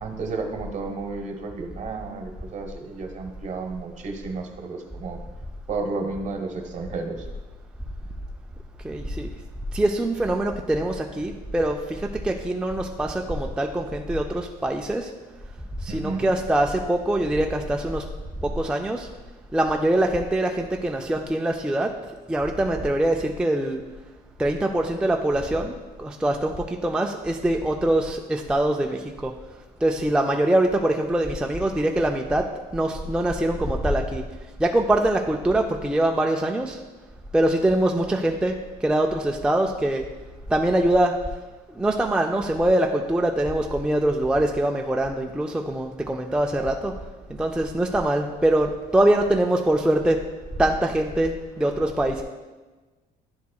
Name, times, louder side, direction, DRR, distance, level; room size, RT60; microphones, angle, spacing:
voice 1, 0.0-5.2 5.7-7.3 15.9-16.3, right 3 dB, 45° right, 4 dB, 1.0 m, -32 dB
voice 2, 8.8-9.3 9.7-15.1 15.8-18.0 18.4-19.1 19.5-21.9 22.3-23.8 24.4-29.3 29.8-32.5 32.7-34.2 34.6-36.8 37.3-40.0 40.5-41.1 41.8-46.9 47.3-50.2 50.6-52.2, right 1 dB, 5° right, 2 dB, 0.4 m, -23 dB
10.5 x 4.2 x 2.3 m, 1.2 s
cardioid pair, 110°, 17 cm